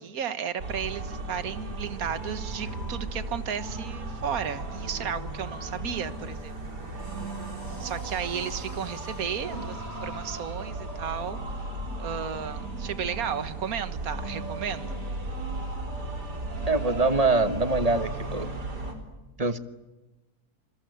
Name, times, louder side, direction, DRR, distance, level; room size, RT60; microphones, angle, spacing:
voice 1, 0.0-6.6 7.8-11.4 12.0-15.0, right 8 dB, 60° right, 11 dB, 1.8 m, -33 dB
sound 1, 0.6-18.9, right 2 dB, 80° right, 4.5 m, -35 dB
sound 2, 5.6-11.5, left 2 dB, 75° left, 7.3 m, -57 dB
voice 2, 16.7-18.5 19.4-19.6, right 3 dB, 25° right, 10 dB, 1.2 m, -24 dB
28.0 x 21.5 x 9.3 m, 1.1 s
omnidirectional pair, 1.7 m